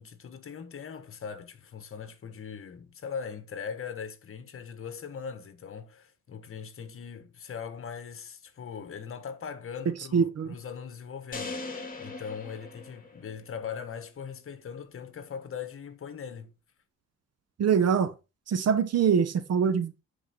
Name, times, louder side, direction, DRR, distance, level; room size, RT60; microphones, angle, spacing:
voice 1, 0.0-16.5, left 6 dB, 45° left, 1.5 m, -40 dB
voice 2, 10.1-10.5 17.6-18.1 18.5-20.0, right 7 dB, 55° right, 1.0 m, -24 dB
sound 1, 11.3-13.6, left 3 dB, 30° left, 2.6 m, -40 dB
10.5 x 4.6 x 4.5 m
cardioid pair, 90°, 30 cm